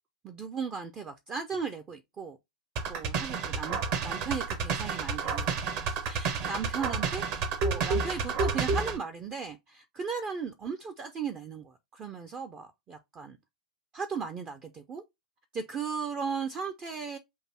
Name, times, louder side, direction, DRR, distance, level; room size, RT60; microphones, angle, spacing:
voice 1, 0.2-2.4 2.9-5.5 5.9-13.4 13.9-15.0 15.5-17.2, right 5 dB, 25° right, 0.5 m, -36 dB
sound 1, 2.8-9.0, right 5 dB, 45° right, 1.1 m, -30 dB
6.4 x 2.6 x 2.8 m
figure-of-eight pair, 95°, 4 cm